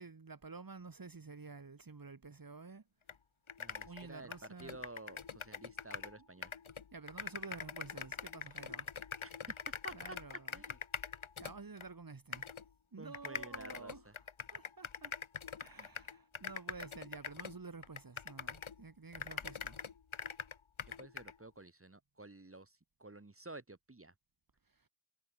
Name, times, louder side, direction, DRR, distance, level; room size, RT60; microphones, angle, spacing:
voice 1, 0.0-2.8 3.8-4.8 6.9-8.9 9.9-10.6 11.4-12.5 12.9-14.1 14.5-15.1 15.6-19.8 24.7-24.9, right 4 dB, 45° right, 2.7 m, -50 dB
sound 1, 3.1-3.2 3.5-6.2 6.4-11.9 12.3-12.6 13.1-18.8 19.1-21.3, left 6 dB, 70° left, 2.6 m, -44 dB
voice 2, 3.6-6.5 9.2-10.2 10.5-10.8 13.0-14.2 19.2-19.5 21.0-24.1, right 2 dB, 25° right, 3.4 m, -52 dB
wide cardioid pair, 80°, 50 cm